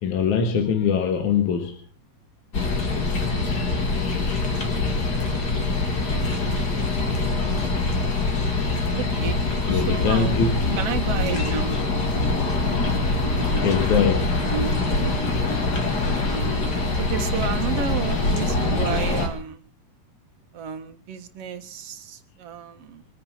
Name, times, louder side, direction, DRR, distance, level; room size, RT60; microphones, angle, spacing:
voice 1, 0.0-1.8 6.5-6.7 9.7-10.8 13.6-14.3, left 6 dB, 65° left, 6 dB, 2.9 m, -22 dB
sound 1, 2.5-19.3, left 3 dB, 30° left, 2.7 m, -24 dB
voice 2, 9.0-9.4 9.7-10.5 10.8-11.7 17.0-19.6 20.5-23.1, right 8 dB, 55° right, 7 dB, 2.3 m, -32 dB
24.5 x 9.8 x 6.0 m, 0.39 s
omnidirectional pair, 3.7 m